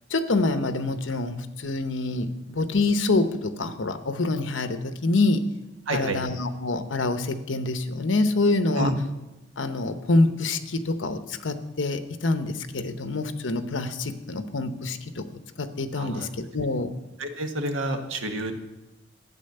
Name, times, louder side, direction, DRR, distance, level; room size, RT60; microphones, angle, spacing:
voice 1, 0.1-5.4 5.9-8.9 9.6-15.3 15.6-16.3 16.5-16.9, left 2 dB, 75° left, 10 dB, 0.9 m, -26 dB
voice 2, 5.8-6.2 8.7-9.0 15.9-16.3 17.2-18.5, right 1 dB, 85° right, 5 dB, 1.4 m, -29 dB
12.5 x 8.9 x 6.7 m, 1.0 s
head